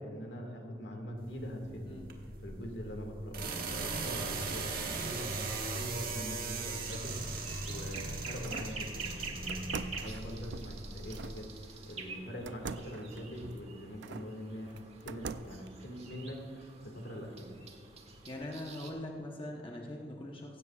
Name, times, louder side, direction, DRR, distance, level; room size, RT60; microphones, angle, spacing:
voice 1, 0.0-2.1 2.4-17.5, equal, 70° left, 2 dB, 2.0 m, -43 dB
sound 1, 1.2-11.3, right 3 dB, 55° right, 1.6 m, -39 dB
sound 2, 6.0-18.9, right 4 dB, 35° right, 1.3 m, -47 dB
sound 3, 7.4-8.8 9.5-11.4 12.5-14.3 14.8-15.7, right 5 dB, 85° right, 0.4 m, -44 dB
voice 2, 18.3-20.6, left 1 dB, 30° left, 0 dB, 1.0 m, -42 dB
16.5 x 15.5 x 2.4 m, 2.4 s
head